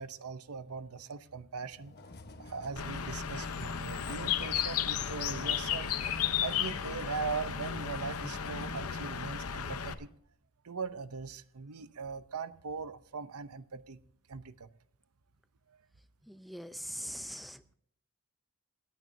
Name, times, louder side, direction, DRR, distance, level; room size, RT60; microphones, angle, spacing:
voice 1, 0.0-2.0 2.4-5.9 6.4-10.1 10.6-14.0 14.3-14.7 15.7-15.8, right 5 dB, 85° right, 0.7 m, -40 dB
sound 1, 1.7-9.7, left 2 dB, 50° left, 1.1 m, -50 dB
Bird, 2.8-9.9, left 8 dB, 80° left, 0.8 m, -34 dB
voice 2, 16.3-17.7, equal, ahead, 0.5 m, -42 dB
27.0 x 9.2 x 2.7 m
head